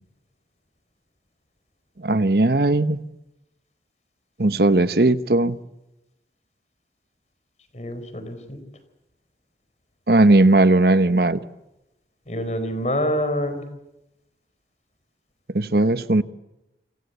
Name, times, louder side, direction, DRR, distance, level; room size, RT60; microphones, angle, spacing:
voice 1, 2.0-3.0 4.4-5.6 10.1-11.4 15.5-16.2, right 2 dB, 60° right, 12 dB, 1.1 m, -17 dB
voice 2, 7.7-8.6 12.3-13.6, equal, 40° left, 10 dB, 4.4 m, -26 dB
28.5 x 24.5 x 8.2 m, 0.92 s
head